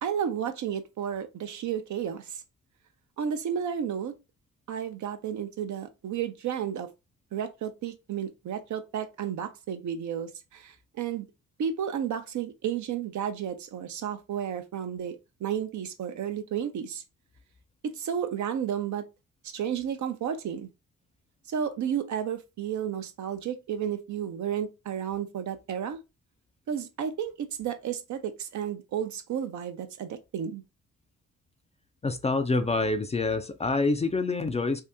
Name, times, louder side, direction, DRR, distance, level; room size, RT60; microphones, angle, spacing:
voice 1, 0.0-2.4 3.2-4.1 4.7-6.9 7.3-11.3 11.6-17.0 17.8-19.0 19.4-20.7 21.5-26.0 26.7-30.6, right 8 dB, 60° right, 0.6 m, -32 dB
voice 2, 32.0-34.8, left 3 dB, 20° left, 0.4 m, -26 dB
2.7 x 2.5 x 3.4 m
supercardioid pair, 55°, 33 cm